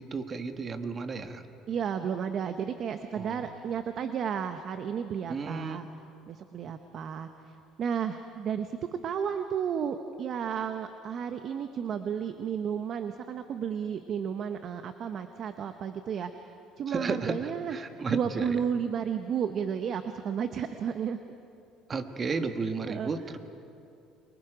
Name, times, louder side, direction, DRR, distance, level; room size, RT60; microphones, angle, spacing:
voice 1, 0.0-1.4 3.1-3.4 5.3-5.8 16.9-18.6 21.9-23.4, right 4 dB, 30° right, 7 dB, 1.5 m, -33 dB
voice 2, 1.7-5.9 6.3-8.8 9.0-16.5 16.8-17.8 18.1-21.2 22.3-22.4 22.9-23.1, right 7 dB, 50° right, 8 dB, 1.0 m, -32 dB
29.5 x 24.0 x 5.1 m, 2.7 s
cardioid pair, 115°, 0 cm